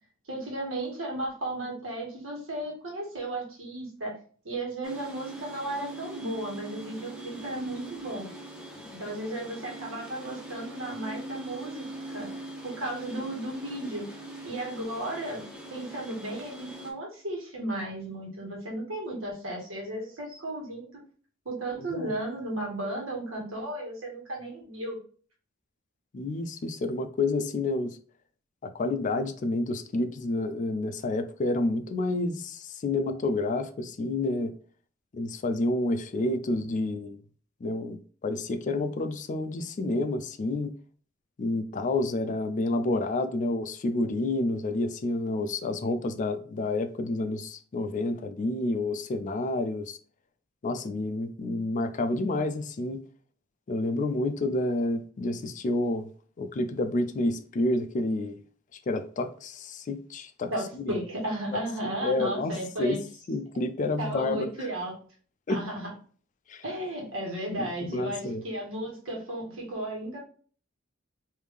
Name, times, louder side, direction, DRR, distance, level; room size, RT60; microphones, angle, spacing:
voice 1, 0.2-4.1 4.4-8.3 9.0-12.3 12.6-14.0 14.4-15.4 15.7-20.9 21.4-25.0 60.5-63.0 64.0-65.0 65.5-65.9 66.6-70.2, right 1 dB, 80° right, 1.4 m, -34 dB
sound 1, 4.8-16.9, right 2 dB, 5° right, 0.7 m, -42 dB
voice 2, 26.1-28.0 28.6-34.5 35.1-37.2 37.6-40.7 41.4-50.0 50.6-53.0 53.7-56.1 56.4-58.4 58.9-60.5 60.9-61.0 61.8-63.0 63.3-64.5 65.5-65.6 66.5-66.6 67.6-68.4, left 2 dB, 40° left, 0.4 m, -29 dB
3.4 x 2.6 x 3.3 m
head